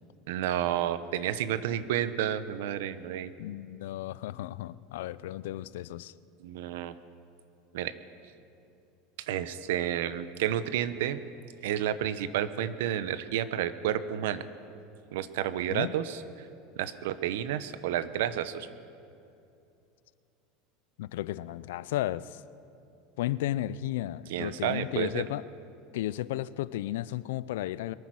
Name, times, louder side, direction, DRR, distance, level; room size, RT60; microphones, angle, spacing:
voice 1, 0.3-3.3 6.4-6.9 7.7-7.9 9.2-11.2 11.6-14.4 15.1-16.5 16.8-18.7 24.3-25.2, right 11 dB, 80° right, 14 dB, 0.8 m, -31 dB
voice 2, 3.4-6.1 15.7-15.9 21.0-22.4 23.2-25.4 25.9-27.9, left 14 dB, 85° left, 18 dB, 0.4 m, -34 dB
22.5 x 9.5 x 6.3 m, 2.6 s
supercardioid pair, 140°, 0 cm